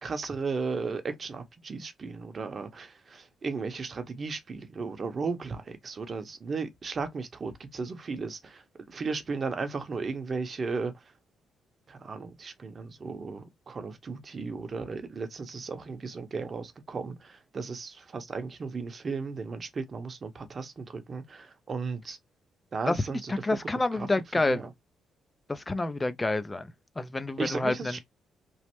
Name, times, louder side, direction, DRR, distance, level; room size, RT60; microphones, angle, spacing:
voice 1, 0.0-11.0 11.9-22.2 22.7-24.1 24.4-24.7 27.4-28.0, right 4 dB, 40° right, 0.7 m, -35 dB
voice 2, 22.9-24.7 25.5-27.7, left 2 dB, 20° left, 0.4 m, -28 dB
3.1 x 2.0 x 2.9 m
cardioid pair, 90°, 0 cm